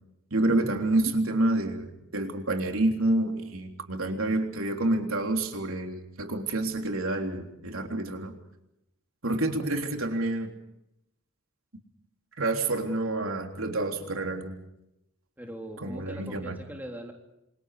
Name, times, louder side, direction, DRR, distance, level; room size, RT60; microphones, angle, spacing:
voice 1, 0.3-8.3 9.2-10.5 12.4-14.6 15.8-16.6, right 2 dB, 80° right, 4 dB, 3.6 m, -28 dB
voice 2, 15.4-17.1, right 1 dB, 10° right, 2 dB, 3.5 m, -40 dB
28.0 x 27.5 x 5.1 m, 0.83 s
head